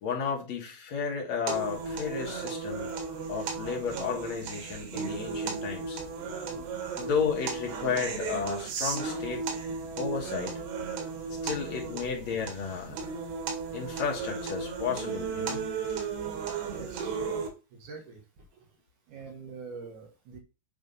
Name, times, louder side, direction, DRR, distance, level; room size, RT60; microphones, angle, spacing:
voice 1, 0.0-2.9 3.3-6.0 7.0-9.4 9.9-10.5 11.4-13.0 13.7-15.6, left 6 dB, 55° left, 0 dB, 2.2 m, -32 dB
sound 1, 1.5-17.5, right 5 dB, 90° right, 3.6 m, -35 dB
voice 2, 16.7-17.2 17.7-18.2 19.1-20.4, right 4 dB, 60° right, 2 dB, 2.5 m, -44 dB
7.8 x 3.4 x 5.3 m, 0.30 s
omnidirectional pair, 4.6 m